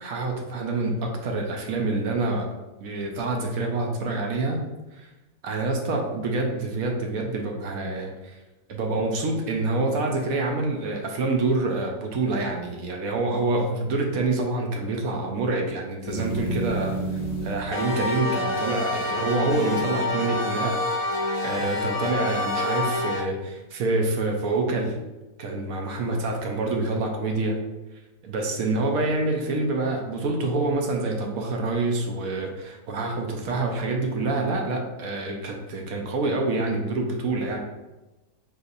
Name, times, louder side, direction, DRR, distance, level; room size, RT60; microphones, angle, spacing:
voice 1, 0.0-2.5 2.8-4.6 5.0-5.1 5.4-8.4 8.7-17.0 17.4-20.8 21.4-24.9 25.4-27.5 28.2-37.6, right 2 dB, 70° right, 1 dB, 1.1 m, -26 dB
sound 1, 16.1-23.2, left 1 dB, 60° left, 0.6 m, -28 dB
4.7 x 3.2 x 2.5 m, 1.1 s
omnidirectional pair, 1.6 m